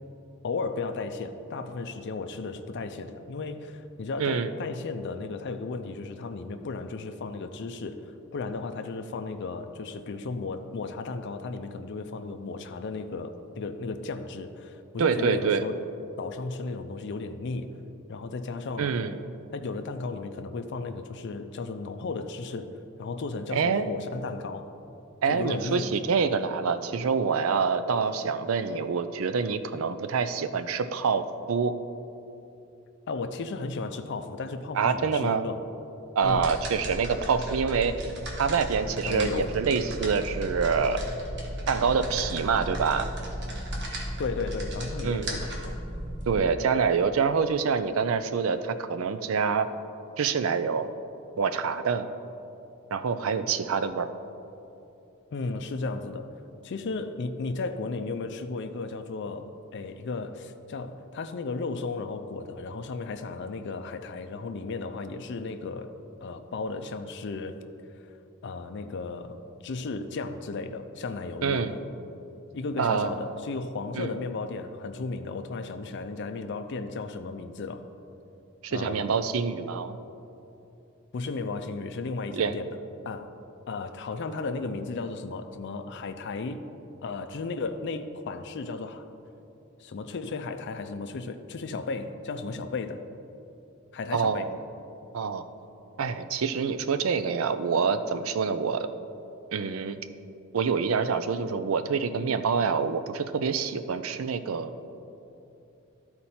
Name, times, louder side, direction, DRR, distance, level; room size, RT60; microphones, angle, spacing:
voice 1, 0.4-15.8 16.2-17.8 18.1-18.9 19.5-22.7 23.0-24.7 25.3-26.0 33.1-35.6 36.2-36.5 39.1-39.6 44.2-45.8 55.3-56.3 56.6-65.9 66.2-67.6 67.9-68.1 68.4-71.8 72.5-77.9 78.7-79.2 81.1-82.8 83.0-83.3 83.7-86.6 87.0-89.1 89.8-93.0 93.9-94.5, left 3 dB, 55° left, 8 dB, 0.4 m, -34 dB
voice 2, 4.2-4.5 15.0-15.6 18.8-19.2 23.5-23.9 25.2-31.7 34.7-35.5 36.2-38.1 38.4-41.0 41.7-43.1 45.0-45.3 46.3-49.7 50.2-50.9 51.4-52.1 52.9-54.1 71.4-71.8 72.8-73.4 74.0-74.1 78.6-80.0 82.3-82.6 94.1-94.6 95.1-95.4 96.0-98.9 99.5-100.0 100.5-104.7, right 5 dB, 75° right, 11 dB, 0.4 m, -26 dB
sound 1, 36.2-46.4, right 1 dB, 55° right, 1.3 m, -35 dB
13.0 x 4.4 x 4.2 m, 2.8 s
head